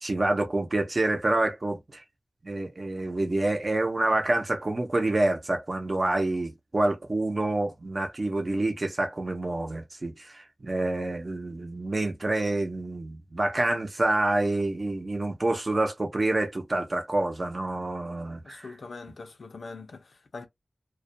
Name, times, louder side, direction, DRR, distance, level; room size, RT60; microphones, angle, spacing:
voice 1, 0.0-2.0 2.4-18.7, right 2 dB, 45° right, 0.7 m, -27 dB
voice 2, 18.4-20.5, left 3 dB, 90° left, 0.6 m, -42 dB
2.4 x 2.2 x 2.6 m
wide cardioid pair, 70°, 0 cm